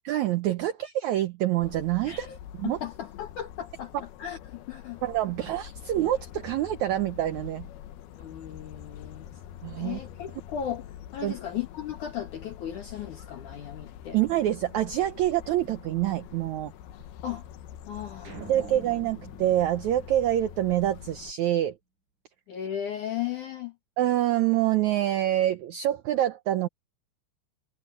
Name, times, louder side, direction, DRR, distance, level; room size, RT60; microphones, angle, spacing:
voice 1, 0.0-2.3 2.6-2.8 5.0-7.7 9.6-10.0 11.2-11.3 14.1-16.7 18.5-21.7 24.0-26.7, right 13 dB, 80° right, 1.7 m, -26 dB
sound 1, 1.6-21.3, left 11 dB, 90° left, 3.1 m, -45 dB
voice 2, 2.1-2.4 2.6-5.0 8.2-9.4 9.8-14.2 17.2-17.4 17.9-18.5 22.5-23.7, left 10 dB, 60° left, 2.9 m, -36 dB
sound 2, 18.2-20.8, right 3 dB, 55° right, 9.1 m, -46 dB
omnidirectional pair, 4.3 m